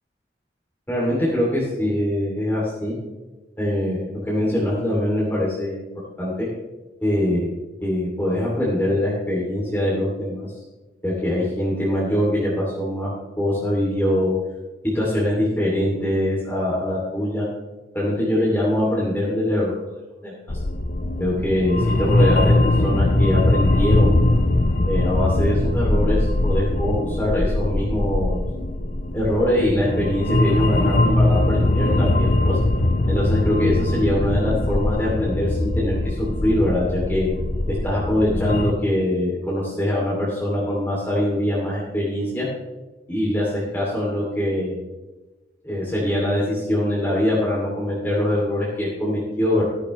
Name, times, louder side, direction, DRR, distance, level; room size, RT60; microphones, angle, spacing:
voice 1, 0.9-2.9 3.6-5.9 6.2-6.5 7.0-7.5 7.8-10.5 11.0-14.3 14.9-17.4 17.9-19.7 20.2-20.3 21.2-24.2 24.9-28.4 29.1-32.6 33.1-37.3 37.7-42.5 43.1-44.8 45.6-49.6, left 1 dB, 10° left, -7 dB, 2.8 m, -23 dB
sound 1, 20.5-38.7, left 1 dB, 50° left, 0.7 m, -21 dB
15.0 x 13.5 x 3.2 m, 1.2 s
head